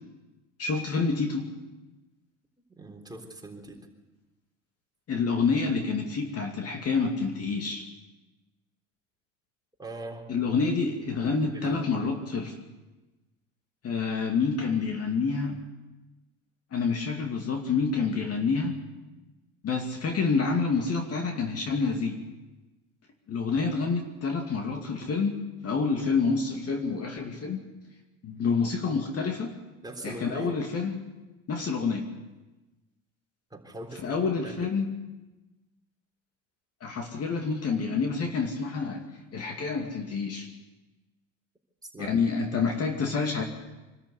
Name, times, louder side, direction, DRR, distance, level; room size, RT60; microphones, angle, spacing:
voice 1, 0.6-1.5 5.1-7.8 10.3-12.6 13.8-15.6 16.7-18.8 19.6-22.2 23.3-27.6 28.2-29.5 30.0-31.0 31.5-32.1 34.0-34.9 36.8-39.0 39.3-40.5 42.0-43.4, left 4 dB, 35° left, 3 dB, 2.5 m, -28 dB
voice 2, 2.8-3.9 9.8-10.4 11.2-12.0 29.8-30.5 33.5-34.7 41.9-42.6, right 2 dB, 10° right, 1 dB, 3.7 m, -41 dB
25.0 x 13.0 x 8.2 m, 1.1 s
hypercardioid pair, 80°, 42 cm